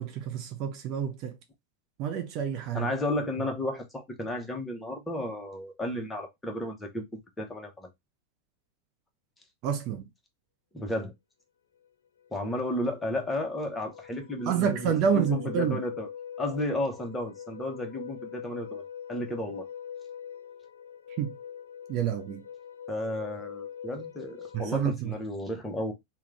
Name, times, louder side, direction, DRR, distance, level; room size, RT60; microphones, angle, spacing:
voice 1, 0.0-1.4 2.0-2.9 9.6-10.1 14.5-15.8 21.2-21.3 21.9-22.4 24.5-25.1, right 8 dB, 40° right, 0.5 m, -28 dB
voice 2, 2.7-7.0 7.4-7.9 10.7-11.1 12.3-16.1 16.4-18.8 19.1-19.7 22.9-25.9, left 1 dB, 10° left, 0.9 m, -33 dB
sound 1, 11.8-11.9 12.2-24.7, left 8 dB, 65° left, 0.3 m, -43 dB
3.6 x 2.3 x 3.2 m
figure-of-eight pair, 90°, 0 cm